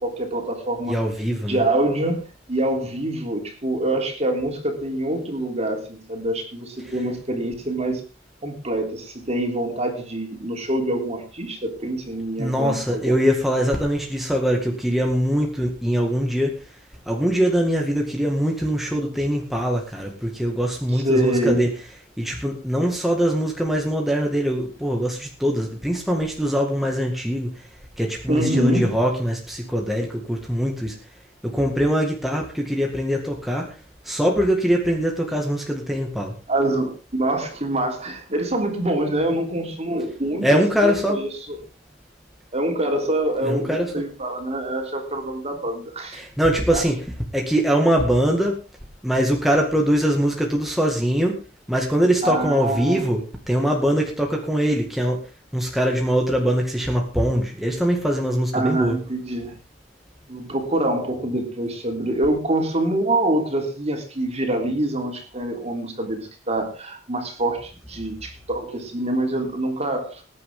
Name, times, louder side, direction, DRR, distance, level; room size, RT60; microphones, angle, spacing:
voice 1, 0.0-1.0 1.4-2.2 2.5-8.0 8.4-13.2 20.9-21.7 28.3-29.0 36.5-41.6 42.5-46.2 46.7-46.8 52.2-53.1 58.5-59.5 60.3-70.2, right 1 dB, 35° right, 3 dB, 3.5 m, -25 dB
voice 2, 0.9-1.6 6.8-6.9 12.4-16.6 17.1-21.7 22.2-27.7 28.0-31.0 31.4-33.8 34.0-36.3 40.4-41.2 43.5-44.0 46.1-48.6 49.0-51.4 51.7-55.2 55.5-59.0, equal, ahead, 0 dB, 2.1 m, -22 dB
20.5 x 9.9 x 3.8 m, 0.33 s
head